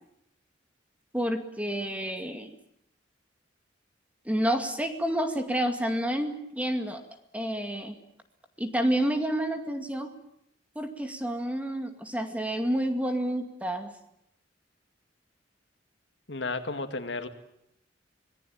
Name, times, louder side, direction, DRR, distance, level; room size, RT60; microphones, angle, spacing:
voice 1, 1.1-2.6 4.2-7.0 7.3-8.0 8.6-10.1 10.8-13.9, right 1 dB, 10° right, 6 dB, 2.3 m, -29 dB
voice 2, 16.3-17.3, left 3 dB, 65° left, 8 dB, 2.3 m, -33 dB
26.0 x 19.0 x 8.9 m, 0.76 s
head